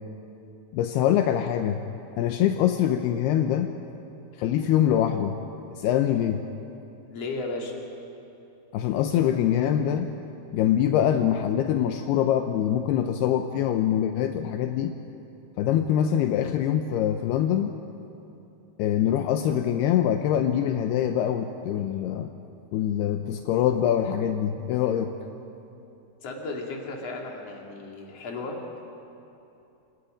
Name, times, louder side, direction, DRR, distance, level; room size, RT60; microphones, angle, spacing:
voice 1, 0.7-1.8 2.2-3.7 4.4-5.4 5.7-6.4 8.7-10.1 10.5-14.9 15.6-17.8 18.8-22.3 22.7-25.1, left 10 dB, 80° left, 6 dB, 2.7 m, -24 dB
voice 2, 7.1-7.8 26.2-28.8, left 3 dB, 40° left, 0 dB, 3.3 m, -34 dB
28.5 x 26.5 x 5.2 m, 2.8 s
omnidirectional pair, 4.7 m